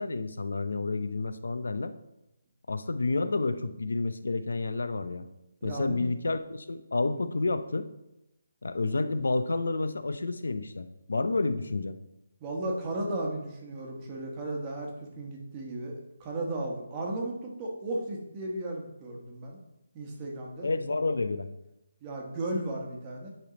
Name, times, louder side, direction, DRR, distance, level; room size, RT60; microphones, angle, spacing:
voice 1, 0.0-1.9 2.7-5.2 5.6-7.9 8.6-12.0 20.6-21.5, left 3 dB, 90° left, 11 dB, 0.6 m, -30 dB
voice 2, 5.6-6.0 12.4-15.9 16.2-19.6 19.9-21.0 22.0-23.3, right 1 dB, 20° right, -1 dB, 1.1 m, -35 dB
10.0 x 3.5 x 3.8 m, 0.90 s
hypercardioid pair, 170°, 0 cm